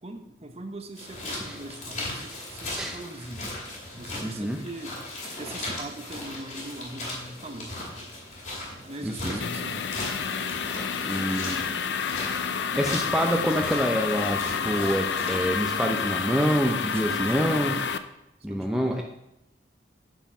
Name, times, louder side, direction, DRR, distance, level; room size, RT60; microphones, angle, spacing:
voice 1, 0.0-3.5 4.0-5.0 5.4-7.7 8.8-9.9 16.9-17.8 18.5-19.0, right 2 dB, 35° right, 6 dB, 0.8 m, -40 dB
sound 1, 0.9-15.8, left 1 dB, 45° left, 2.4 m, -38 dB
voice 2, 4.2-4.6 9.0-9.4 11.1-11.7 12.8-17.8 18.4-19.0, equal, 5° right, 1 dB, 0.6 m, -26 dB
sound 2, 9.4-18.0, left 6 dB, 80° left, 0.5 m, -29 dB
9.1 x 4.6 x 5.9 m, 0.86 s
head